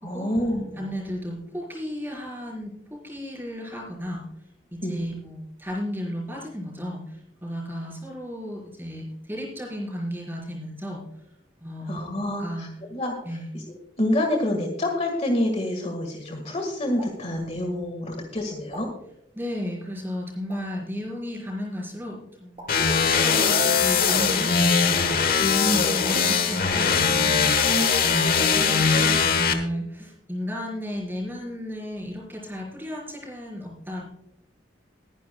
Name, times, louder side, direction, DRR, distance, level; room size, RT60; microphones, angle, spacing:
voice 1, 0.0-0.8 4.8-5.1 11.9-13.1 13.5-13.6 14.0-18.9 25.4-26.0, left 1 dB, 35° left, 3 dB, 1.7 m, -27 dB
voice 2, 0.8-11.2 11.6-12.6 13.2-13.5 19.3-25.4 25.7-34.0, equal, 10° right, -2 dB, 4.6 m, -34 dB
sound 1, 17.0-17.1 18.7-18.8 20.5-20.6 22.5-22.7 24.2-24.3 26.0-26.2, right 1 dB, 30° right, 3.7 m, -40 dB
sound 2, 22.7-29.5, left 5 dB, 50° left, 1.3 m, -21 dB
21.5 x 10.0 x 2.3 m, 0.80 s
head